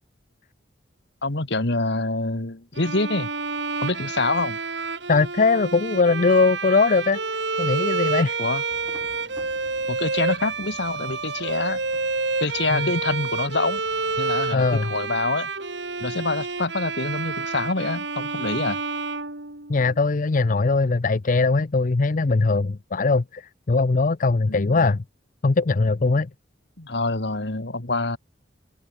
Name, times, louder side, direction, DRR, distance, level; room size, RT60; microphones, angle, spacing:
voice 1, 1.2-3.3 3.8-4.6 8.4-8.6 9.9-11.8 12.4-13.8 14.2-15.5 16.0-18.8 24.5-25.0 26.8-28.2, left 3 dB, 65° left, 2.0 m, -26 dB
Bowed string instrument, 2.8-20.0, right 4 dB, 70° right, 4.0 m, -29 dB
voice 2, 5.1-7.2 7.6-8.4 12.7-12.9 14.5-14.9 19.7-25.0 25.4-26.3, left 3 dB, 45° left, 0.6 m, -20 dB
sound 1, 8.7-14.5, equal, 5° right, 7.3 m, -52 dB
head